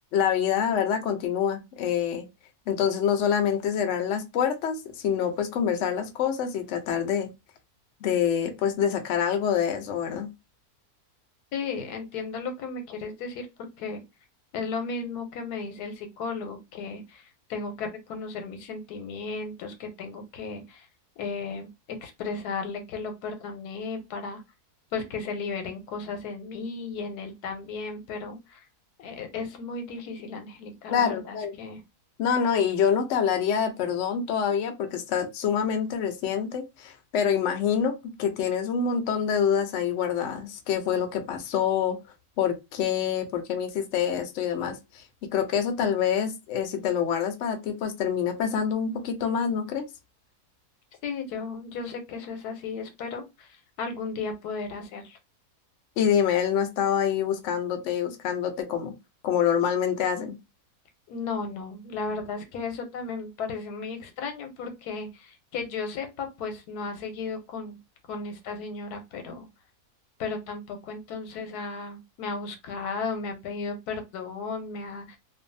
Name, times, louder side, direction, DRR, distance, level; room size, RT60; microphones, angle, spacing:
voice 1, 0.1-2.3 2.7-7.3 8.0-10.3 30.9-31.6 32.2-42.0 42.4-45.0 45.3-49.9 56.0-58.9 59.2-60.4, left 8 dB, 65° left, 0.8 m, -26 dB
voice 2, 11.5-14.0 14.5-17.2 17.5-20.9 21.2-21.7 22.0-24.4 24.9-28.6 29.0-31.8 51.0-55.2 61.1-67.8 68.1-69.5 70.2-75.2, left 4 dB, 85° left, 1.2 m, -35 dB
2.6 x 2.3 x 2.5 m
omnidirectional pair, 1.6 m